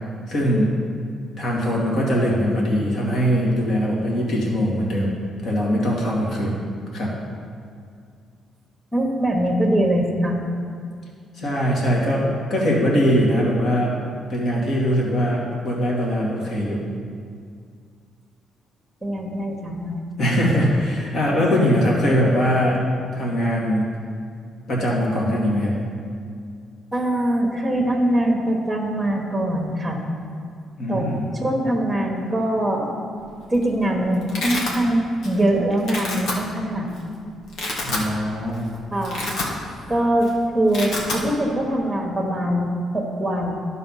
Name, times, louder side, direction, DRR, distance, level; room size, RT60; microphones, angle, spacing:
voice 1, 0.3-0.7 1.4-6.6 6.9-7.1 11.3-14.0 14.3-16.9 20.2-22.8 23.1-23.9 24.7-25.7 30.8-31.2 37.8-38.6, equal, 60° left, -4 dB, 2.1 m, -21 dB
voice 2, 8.9-10.4 19.0-19.9 26.9-30.0 30.9-32.9 33.5-36.9 38.9-39.3 39.9-43.5, right 1 dB, 10° right, 0 dB, 1.3 m, -22 dB
Domestic sounds home sounds, 33.3-33.6 33.9-34.8 35.2-35.5 35.8-36.3 37.0-37.1 37.4-38.1 38.5-38.6 38.9-39.9 40.1-40.3 40.6-41.2, left 2 dB, 75° left, 1.6 m, -28 dB
12.0 x 4.1 x 5.6 m, 2.3 s
cardioid pair, 90°, 0 cm